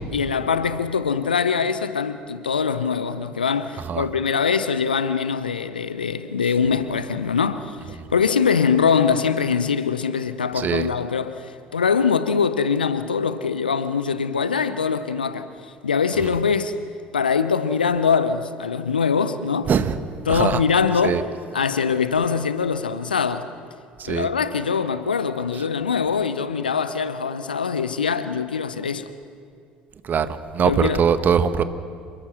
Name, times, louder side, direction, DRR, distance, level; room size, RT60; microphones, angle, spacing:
voice 1, 0.1-15.5 15.8-16.8 17.1-19.7 20.3-21.2 21.5-23.5 24.1-29.1 30.6-31.0, left 6 dB, 80° left, 0.9 m, -23 dB
voice 2, 10.5-10.9 16.2-16.3 19.7-20.0 20.3-20.6 21.0-21.2 24.0-24.3 30.0-31.6, right 7 dB, 40° right, 1.4 m, -21 dB
28.0 x 21.0 x 6.1 m
figure-of-eight pair, 60°, 5 cm